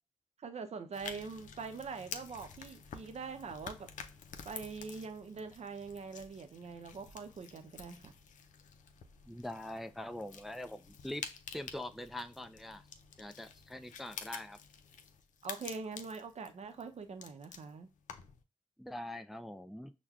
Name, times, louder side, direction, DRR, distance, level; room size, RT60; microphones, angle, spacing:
voice 1, 0.4-3.9 4.4-8.1 15.4-17.9, right 5 dB, 55° right, 0.6 m, -43 dB
sound 1, 0.9-18.4, left 7 dB, 75° left, 0.5 m, -50 dB
voice 2, 9.3-11.2 11.5-12.8 13.2-14.6 18.8-19.9, left 1 dB, ahead, 0.3 m, -43 dB
5.7 x 2.2 x 2.4 m
cardioid pair, 55°, 13 cm